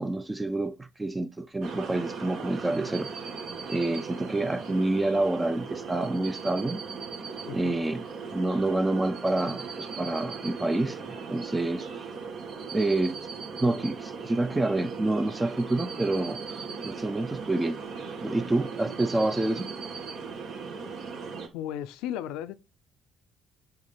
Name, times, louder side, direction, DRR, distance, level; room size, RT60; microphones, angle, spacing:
voice 1, 0.0-3.1 3.7-6.8 7.5-8.0 8.3-11.0 11.3-11.9 12.7-13.3 13.6-17.8 18.2-19.7, right 2 dB, 20° right, 0.7 m, -28 dB
sound 1, 1.6-21.5, right 5 dB, 65° right, 2.0 m, -38 dB
voice 2, 7.4-7.8 21.5-22.5, left 11 dB, 75° left, 0.6 m, -35 dB
8.0 x 3.7 x 5.5 m
hypercardioid pair, 55°, 0 cm